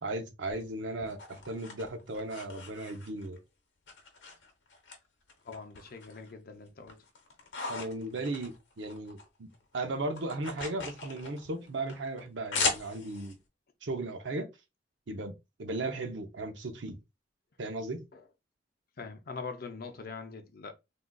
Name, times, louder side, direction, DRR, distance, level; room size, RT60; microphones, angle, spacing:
voice 1, 0.0-3.4 7.7-9.5 9.7-13.4 13.8-14.5 15.1-15.3 15.6-17.0 17.6-18.0, right 2 dB, 80° right, 0.7 m, -36 dB
sound 1, 0.5-3.4 3.9-5.0 5.3-6.3 6.7-9.3 9.5-13.3, left 4 dB, 85° left, 0.9 m, -38 dB
voice 2, 5.4-7.0 18.1-18.2 19.0-20.7, left 4 dB, 55° left, 0.6 m, -43 dB
3.6 x 2.4 x 2.2 m
head